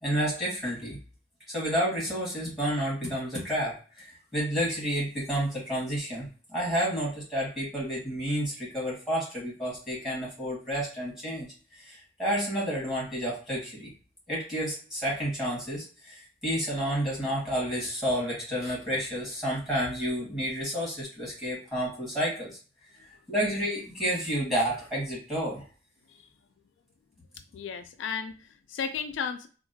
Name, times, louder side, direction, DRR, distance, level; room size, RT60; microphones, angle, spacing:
voice 1, 0.0-1.0 1.5-13.9 14.3-22.5 23.3-25.6, equal, ahead, -5 dB, 1.7 m, -30 dB
voice 2, 27.5-29.5, left 6 dB, 80° left, 8 dB, 0.3 m, -34 dB
3.6 x 2.4 x 2.6 m, 0.38 s
head